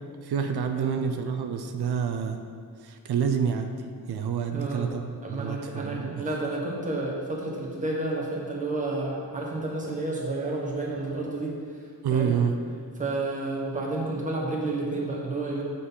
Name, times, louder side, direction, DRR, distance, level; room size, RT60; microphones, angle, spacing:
voice 1, 0.2-2.4 2.8-3.7 4.1-6.2 12.0-12.6, right 7 dB, 85° right, 6 dB, 0.6 m, -28 dB
voice 2, 4.5-4.9 5.2-11.6 12.1-12.3 13.0-15.6, right 2 dB, 20° right, -3 dB, 1.2 m, -30 dB
8.6 x 4.1 x 5.5 m, 2.2 s
wide cardioid pair, 180°, 38 cm